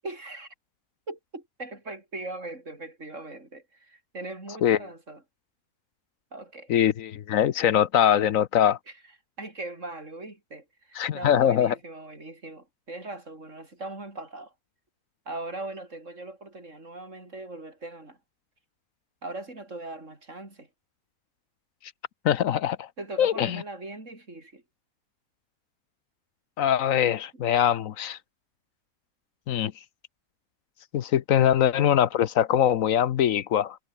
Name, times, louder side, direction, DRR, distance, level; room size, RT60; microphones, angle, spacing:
voice 1, 0.0-0.5 1.1-5.2 6.3-6.7 8.9-9.0 9.4-14.5 15.3-18.2 19.2-20.7 23.0-24.6 27.4-27.5, right 2 dB, 60° right, 5.3 m, -39 dB
voice 2, 6.7-8.8 11.0-11.7 22.2-22.9 23.2-23.6 26.6-28.2 29.5-29.7 30.9-33.8, left 10 dB, 70° left, 1.1 m, -22 dB
omnidirectional pair, 1.5 m